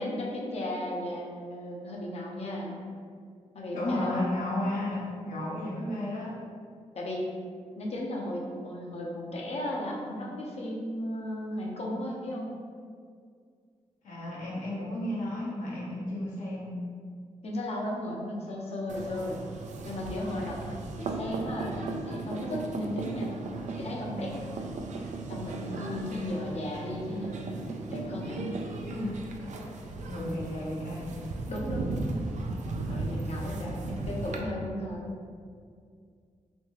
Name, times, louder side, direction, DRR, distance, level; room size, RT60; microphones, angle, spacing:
voice 1, 0.0-2.8 3.5-4.3 6.9-7.3 7.8-12.5 17.4-19.4 19.8-23.4 23.8-24.4 25.3-28.6 31.5-31.9 32.9-35.1, left 1 dB, 55° left, -2 dB, 0.7 m, -35 dB
voice 2, 3.7-6.3 14.0-16.8 18.5-18.6 28.9-29.2 30.1-31.3, left 1 dB, 90° left, -7 dB, 1.0 m, -33 dB
sound 1, 18.9-34.4, right 3 dB, 70° right, 0.4 m, -36 dB
3.2 x 2.7 x 3.0 m, 2.2 s
cardioid pair, 90°, 13 cm